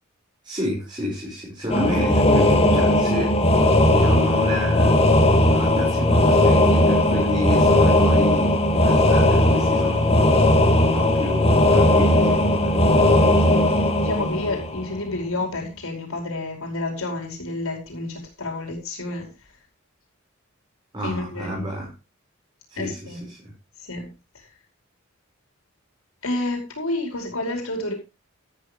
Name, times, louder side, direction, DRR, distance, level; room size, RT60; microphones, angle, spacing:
voice 1, 0.4-3.4 3.8-4.9 5.5-10.3 10.8-12.8 20.9-21.9 22.7-23.5, equal, 20° right, -4 dB, 5.9 m, -30 dB
sound 1, 1.7-15.2, left 1 dB, 30° left, 2.3 m, -18 dB
voice 2, 13.1-19.3 21.0-21.7 22.7-23.3 23.8-24.5 26.2-27.9, left 2 dB, 90° left, 1 dB, 5.1 m, -30 dB
13.0 x 12.5 x 3.5 m, 0.28 s
head